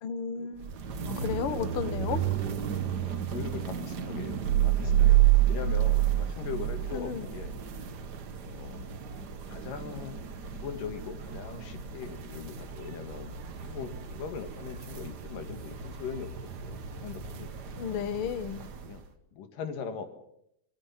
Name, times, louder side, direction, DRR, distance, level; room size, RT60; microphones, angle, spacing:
voice 1, 0.0-0.8 1.1-2.3 6.9-7.3 17.7-18.6, left 7 dB, 60° left, 13 dB, 1.5 m, -33 dB
sound 1, 0.5-19.1, right 6 dB, 70° right, 0.9 m, -37 dB
voice 2, 3.0-7.6 8.4-8.8 9.5-10.2 10.5-13.3 13.6-17.6 18.9-19.0 19.3-20.1, left 7 dB, 75° left, 8 dB, 3.5 m, -41 dB
sound 2, 4.4-7.0 7.3-7.5, right 14 dB, 85° right, 3.0 m, -22 dB
28.0 x 20.0 x 5.8 m, 0.76 s
omnidirectional pair, 3.9 m